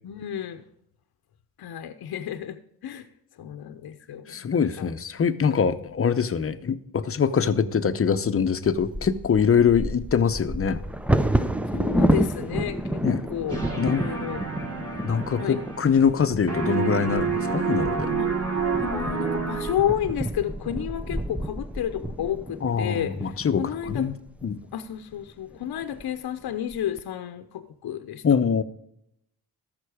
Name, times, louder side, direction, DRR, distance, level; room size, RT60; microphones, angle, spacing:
voice 1, 0.0-0.6 1.6-2.6 2.8-3.0 3.4-4.9 5.5-5.6 11.7-13.0 13.3-14.4 15.4-15.6 18.2-18.3 18.8-24.0 24.7-28.2, left 10 dB, 60° left, 8 dB, 0.9 m, -31 dB
voice 2, 4.3-10.8 13.0-13.2 13.8-14.0 15.0-18.1 22.6-24.1 24.4-24.6 28.2-28.6, left 6 dB, 30° left, 12 dB, 0.8 m, -23 dB
Bird vocalization bird call bird song / Wind / Thunder, 8.7-24.5 25.2-25.3 25.6-26.0 26.5-27.0, right 1 dB, 5° right, 0.5 m, -30 dB
sound 1, 13.5-16.2 16.5-20.1, right 5 dB, 35° right, 4.3 m, -29 dB
13.5 x 6.0 x 4.9 m, 0.77 s
cardioid pair, 80°, 42 cm